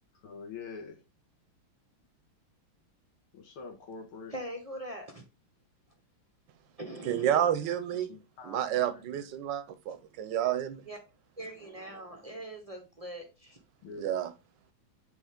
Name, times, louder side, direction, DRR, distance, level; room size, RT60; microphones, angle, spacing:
voice 1, 0.2-1.0 3.3-4.3 8.4-9.0 13.8-14.0, left 4 dB, 85° left, 2.0 m, -44 dB
voice 2, 4.3-5.2 6.8-7.4 10.9-11.0 11.4-13.6, right 1 dB, 35° right, 0.5 m, -42 dB
voice 3, 7.0-8.1 8.4-10.8 13.9-14.3, right 10 dB, 70° right, 1.3 m, -30 dB
7.8 x 3.4 x 3.6 m
omnidirectional pair, 2.3 m